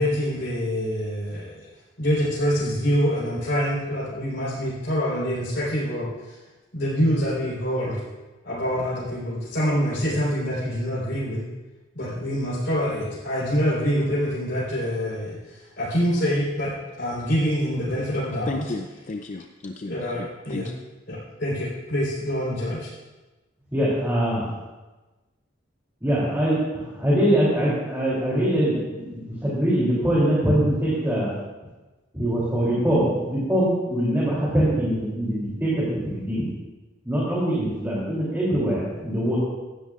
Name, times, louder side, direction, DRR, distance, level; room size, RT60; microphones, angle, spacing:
voice 1, 0.0-1.6 2.0-6.4 6.7-8.0 8.4-11.4 11.9-16.7 17.0-18.6 19.8-20.7 21.1-22.9, equal, 65° left, -10 dB, 4.1 m, -25 dB
voice 2, 18.5-20.7, left 3 dB, 40° left, 4 dB, 0.5 m, -34 dB
voice 3, 23.7-24.4 26.0-31.4 32.1-36.5 37.0-39.4, right 1 dB, 10° right, -8 dB, 3.1 m, -23 dB
17.5 x 13.0 x 2.5 m, 1.2 s
head